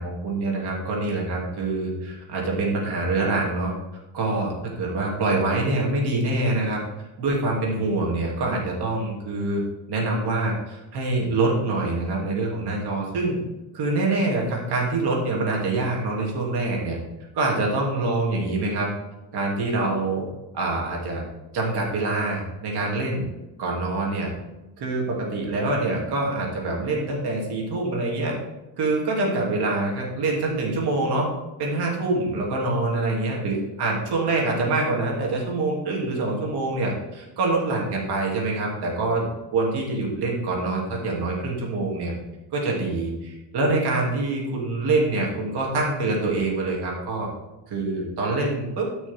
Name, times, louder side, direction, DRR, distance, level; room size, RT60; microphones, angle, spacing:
voice 1, 0.0-3.7 4.1-6.8 7.2-9.6 9.9-13.4 13.7-17.0 17.3-18.9 19.3-20.2 20.5-21.2 21.5-23.2 23.6-24.3 24.8-28.4 28.8-31.3 31.6-39.3 39.5-42.1 42.5-47.3 47.7-48.9, right 2 dB, 60° right, -2 dB, 2.7 m, -25 dB
13.5 x 6.1 x 3.6 m, 1.0 s
cardioid pair, 160°, 44 cm